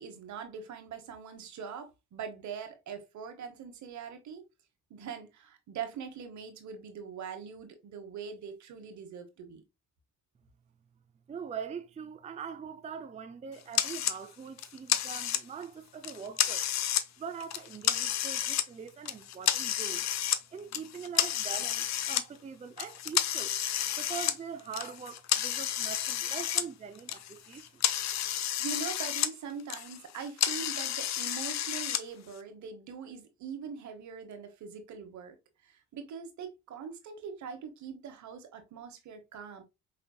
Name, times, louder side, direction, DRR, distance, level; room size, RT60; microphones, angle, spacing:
voice 1, 0.0-4.4 4.9-9.6 28.6-35.3 35.6-39.6, right 6 dB, 70° right, 1.1 m, -42 dB
voice 2, 11.3-16.7 17.2-20.1 20.5-23.6 24.0-27.8, right 6 dB, 25° right, 0.4 m, -42 dB
sound 1, 13.7-14.2 14.6-15.6 16.0-17.1 17.4-18.7 19.1-20.4 20.7-22.2 22.8-26.7 27.0-29.3 29.6-32.0, left 11 dB, 65° left, 0.6 m, -31 dB
5.1 x 3.3 x 2.2 m
cardioid pair, 90°, 30 cm